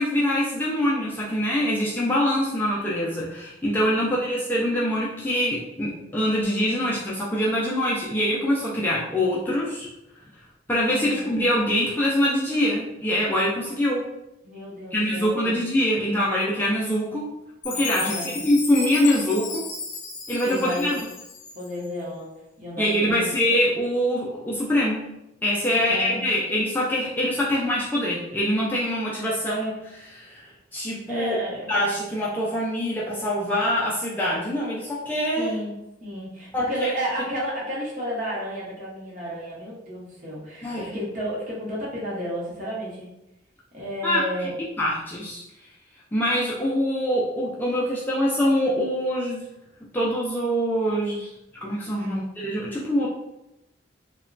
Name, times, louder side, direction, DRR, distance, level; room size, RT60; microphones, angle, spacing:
voice 1, 0.0-9.9 10.7-14.1 14.9-17.2 17.6-19.7 20.3-21.0 22.8-25.1 25.4-30.4 30.7-31.4 31.7-35.6 36.5-36.9 40.6-40.9 44.0-44.5 44.8-45.4 46.1-49.4 49.9-51.3 51.6-53.1, equal, 10° left, -5 dB, 0.3 m, -24 dB
voice 2, 3.8-4.3 10.9-11.3 14.4-15.6 18.0-18.3 20.4-21.0 21.5-23.2 25.7-26.2 31.1-31.7 35.4-43.1 43.7-44.5 51.9-52.2, equal, 45° right, -6 dB, 0.8 m, -32 dB
Chime, 17.6-21.9, left 4 dB, 90° left, 0.5 m, -34 dB
2.9 x 2.2 x 2.5 m, 0.89 s
head